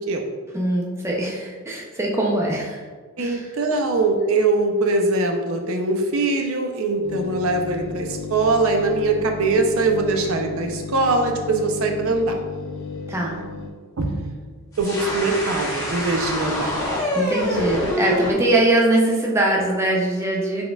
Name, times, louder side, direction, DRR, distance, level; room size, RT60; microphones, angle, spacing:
voice 1, 0.5-2.8 3.2-3.5 13.1-13.4 17.1-20.7, right 1 dB, 15° right, -2 dB, 0.4 m, -22 dB
voice 2, 3.2-12.3 14.0-14.3 14.8-16.7, right 3 dB, 75° right, 3 dB, 0.5 m, -22 dB
sound 1, 7.0-13.7, left 4 dB, 60° left, 0.5 m, -34 dB
sound 2, 14.7-18.3, left 1 dB, 15° left, 0.9 m, -25 dB
4.0 x 3.6 x 2.2 m, 1.5 s
head